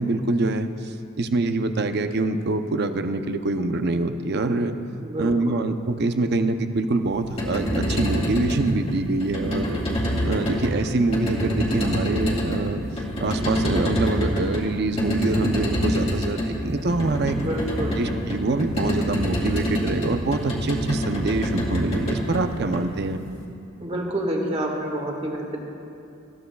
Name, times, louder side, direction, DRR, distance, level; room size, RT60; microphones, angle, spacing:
voice 1, 0.0-4.8 5.2-9.8 10.2-12.8 13.2-17.4 18.0-23.2, right 2 dB, 55° right, 7 dB, 0.7 m, -25 dB
voice 2, 5.0-5.6 17.4-18.0 23.8-25.6, right 1 dB, 30° right, 0 dB, 1.7 m, -28 dB
sound 1, 7.1-23.3, equal, 30° left, 2.2 m, -26 dB
20.0 x 14.5 x 2.3 m, 2.7 s
head